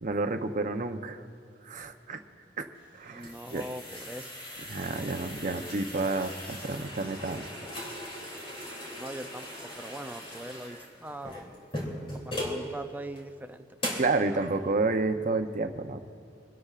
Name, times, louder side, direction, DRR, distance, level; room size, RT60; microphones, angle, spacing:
voice 1, 0.0-1.2 1.6-2.2 2.6-2.7 2.9-3.6 4.7-7.4 14.0-16.0, right 3 dB, 45° right, 7 dB, 0.7 m, -30 dB
sound 1, 2.8-12.6 13.1-13.2 13.8-14.2, left 1 dB, 30° left, 2.9 m, -39 dB
voice 2, 3.1-4.3 8.7-11.4 12.2-14.4, right 1 dB, 10° right, 8 dB, 0.4 m, -42 dB
25.5 x 12.0 x 2.5 m, 2.6 s
head